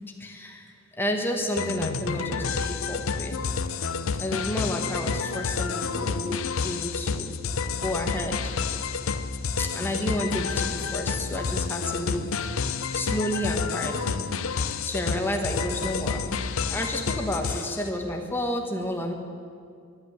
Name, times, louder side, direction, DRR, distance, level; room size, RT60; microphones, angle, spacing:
voice 1, 0.2-0.6 1.0-3.4 4.2-6.4 6.6-7.3 7.8-8.4 9.6-12.3 12.9-14.2 14.8-16.2 16.7-19.1, left 1 dB, 10° left, 3 dB, 1.2 m, -30 dB
sound 1, 1.6-17.9, left 5 dB, 75° left, 0.6 m, -29 dB
11.5 x 10.5 x 8.5 m, 2.3 s
head